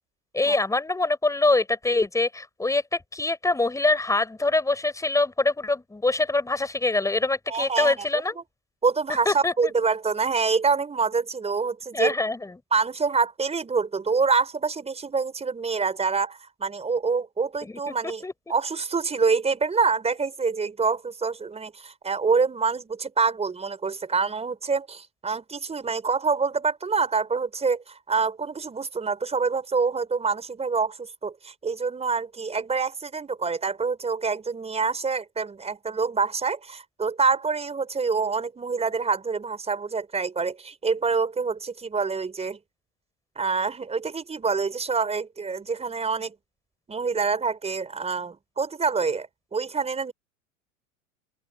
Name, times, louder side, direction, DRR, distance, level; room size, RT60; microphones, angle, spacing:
voice 1, 0.3-8.3 9.2-9.7 11.9-12.5 17.6-18.3, left 2 dB, 10° left, 4.7 m, -24 dB
voice 2, 7.5-8.1 8.8-12.1 12.7-18.2 18.5-42.6 43.4-46.3 46.9-50.1, right 5 dB, 15° right, 5.2 m, -26 dB
open air
hypercardioid pair, 90°, 39 cm